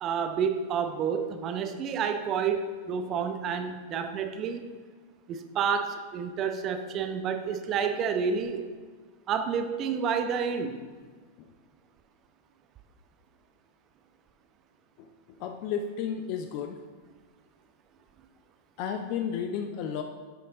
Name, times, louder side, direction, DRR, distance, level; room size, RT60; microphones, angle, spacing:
voice 1, 0.0-4.7 5.3-8.6 9.3-10.8, right 6 dB, 35° right, 8 dB, 0.8 m, -29 dB
voice 2, 15.4-16.8 18.8-20.0, left 7 dB, 45° left, 5 dB, 0.6 m, -32 dB
11.0 x 7.6 x 3.9 m, 1.5 s
figure-of-eight pair, 90°, 0 cm